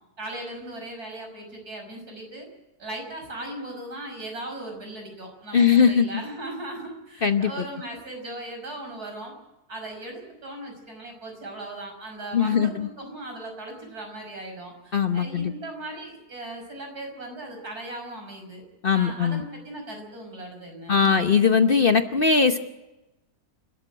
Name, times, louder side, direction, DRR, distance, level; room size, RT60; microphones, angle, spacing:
voice 1, 0.2-2.5 2.8-9.3 9.7-18.6 18.9-21.2, right 1 dB, 75° right, 3 dB, 6.2 m, -38 dB
voice 2, 5.5-6.1 7.2-7.6 12.3-12.9 14.9-15.5 18.8-19.4 20.9-22.6, left 6 dB, 40° left, 8 dB, 1.0 m, -20 dB
29.0 x 13.0 x 7.8 m, 0.99 s
omnidirectional pair, 1.6 m